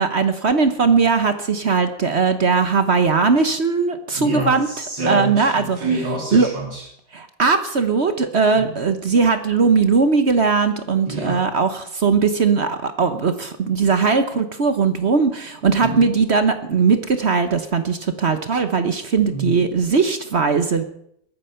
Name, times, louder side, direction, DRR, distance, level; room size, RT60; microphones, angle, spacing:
voice 1, 0.0-4.7 5.1-5.8 6.3-6.5 7.1-20.8, right 5 dB, 45° right, 9 dB, 1.0 m, -19 dB
voice 2, 4.2-6.8 11.1-11.4 15.8-16.1 19.3-19.6, right 2 dB, 70° right, -3 dB, 3.7 m, -26 dB
21.0 x 8.9 x 5.7 m, 0.71 s
omnidirectional pair, 2.0 m